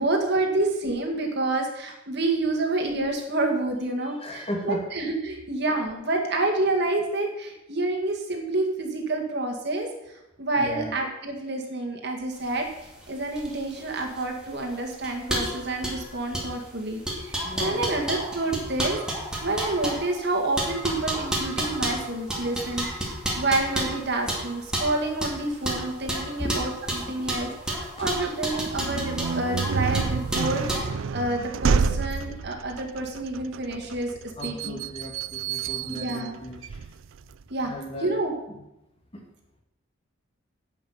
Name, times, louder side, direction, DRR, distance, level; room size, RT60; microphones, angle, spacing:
voice 1, 0.0-9.9 10.4-34.1 34.4-34.8 35.9-36.4 37.5-37.7 38.0-38.3, right 2 dB, 55° right, 2 dB, 2.3 m, -28 dB
voice 2, 4.0-4.9 10.6-11.0 17.4-17.9 26.4-26.6 27.2-27.3 28.0-28.1 28.6-28.7 34.4-36.9 37.6-38.2 38.5-38.6 39.1-39.2, left 1 dB, 30° left, 2 dB, 2.1 m, -36 dB
sound 1, 12.4-30.9, right 1 dB, 5° right, 2.3 m, -31 dB
sound 2, 28.7-37.4, right 5 dB, 80° right, 0.4 m, -29 dB
10.5 x 6.0 x 8.8 m, 0.89 s
head